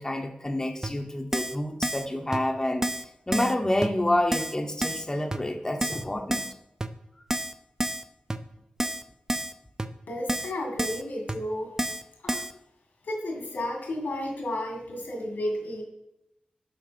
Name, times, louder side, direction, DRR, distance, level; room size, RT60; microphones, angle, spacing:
voice 1, 0.0-6.5, left 1 dB, 20° left, 3 dB, 0.7 m, -28 dB
Keyboard (musical), 0.8-0.9 1.3-1.6 1.8-2.1 2.3-2.4 2.8-3.0 3.3-3.5 3.8-3.9 4.3-4.5 4.8-5.0 5.3-5.4 5.8-6.0 6.3-6.5 6.8-6.9 7.3-7.5 7.8-8.0 8.3-8.4 8.8-9.0 9.3-9.5 9.8-9.9 10.3-10.5 10.8-11.0 11.3-11.4 11.8-12.0 12.3-12.5, right 1 dB, 15° right, 0.5 m, -29 dB
voice 2, 10.1-11.8 12.2-12.4 13.1-15.8, left 1 dB, 85° left, 1 dB, 2.0 m, -32 dB
6.1 x 5.9 x 5.1 m, 0.90 s
cardioid pair, 50°, 3 cm